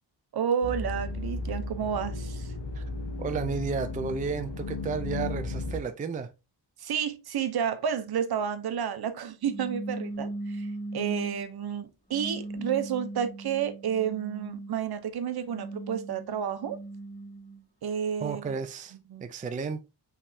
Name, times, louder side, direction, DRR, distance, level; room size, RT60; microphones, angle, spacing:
voice 1, 0.3-2.5 6.8-16.8 17.8-18.4 19.1-19.3, right 8 dB, 60° right, 0.8 m, -31 dB
sound 1, 0.6-5.8, left 2 dB, 75° left, 0.9 m, -34 dB
voice 2, 3.2-6.3 18.2-19.8, right 5 dB, 20° right, 0.4 m, -33 dB
sound 2, 9.4-11.5 12.1-14.8 15.4-17.6, right 2 dB, 15° left, 2.1 m, -38 dB
5.8 x 3.4 x 2.6 m
wide cardioid pair, 120°, 43 cm